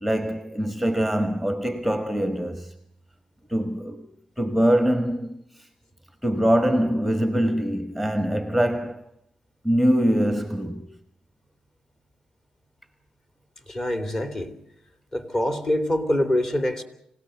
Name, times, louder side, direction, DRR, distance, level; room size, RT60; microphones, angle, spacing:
voice 1, 0.0-2.7 3.5-4.1 4.4-5.7 6.2-9.1 9.6-10.9, equal, 5° left, 1.5 m, -23 dB
voice 2, 13.7-14.5 15.1-16.8, left 1 dB, 25° left, 3.2 m, -25 dB
26.5 x 17.5 x 7.9 m
cardioid pair, 115°, 2 cm